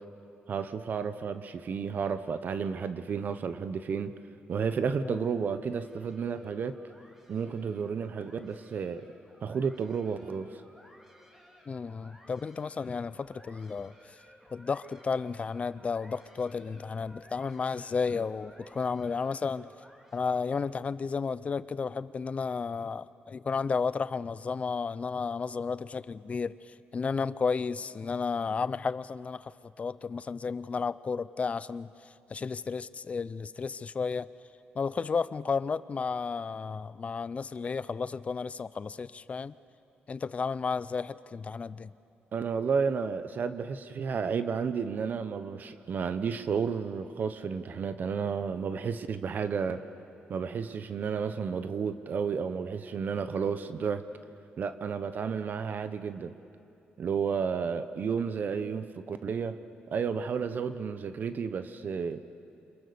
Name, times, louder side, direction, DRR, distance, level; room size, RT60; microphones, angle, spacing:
voice 1, 0.5-4.2 4.5-6.8 7.3-9.1 9.4-10.6 42.3-49.8 50.3-54.0 54.6-56.4 57.0-59.6 59.9-62.2, right 6 dB, 55° right, 11 dB, 0.9 m, -32 dB
sound 1, 5.7-20.9, equal, 10° right, 3.3 m, -58 dB
voice 2, 11.7-13.9 14.5-19.7 20.1-29.5 29.8-31.9 32.3-34.3 34.7-39.5 40.1-41.9, left 5 dB, 35° left, 17 dB, 0.6 m, -32 dB
29.5 x 26.5 x 7.0 m, 2.6 s
cardioid pair, 120°, 4 cm